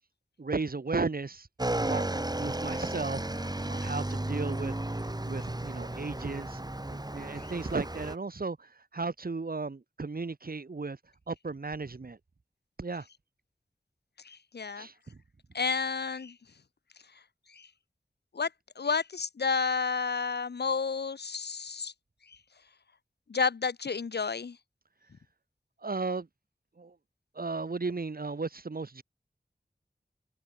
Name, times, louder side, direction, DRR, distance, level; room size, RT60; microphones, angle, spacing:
voice 1, 0.4-1.5 1.8-3.2 3.7-4.7 5.3-6.6 6.9-11.0 11.3-12.2 12.8-13.1 14.8-15.2 25.8-26.3 26.8-27.0 27.3-29.0, right 3 dB, 65° right, 1.8 m, -35 dB
Motorcycle / Engine, 1.6-8.2, right 1 dB, 25° right, 2.9 m, -34 dB
voice 2, 14.2-14.9 15.5-16.4 17.5-17.7 18.3-18.5 18.8-21.9 22.3-22.4 23.3-24.6, left 5 dB, 85° left, 0.9 m, -31 dB
wide cardioid pair, 70°, 17 cm